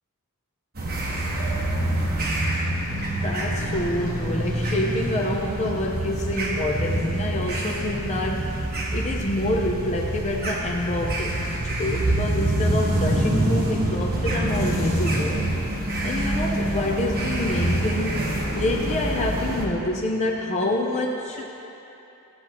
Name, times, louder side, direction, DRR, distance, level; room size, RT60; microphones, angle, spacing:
sound 1, 0.7-19.6, right 1 dB, 45° right, 1.3 m, -26 dB
voice 1, 3.2-8.5 8.9-15.5 16.0-18.2 18.5-21.4, left 1 dB, 30° left, -1 dB, 0.6 m, -27 dB
13.0 x 7.9 x 3.0 m, 2.9 s
head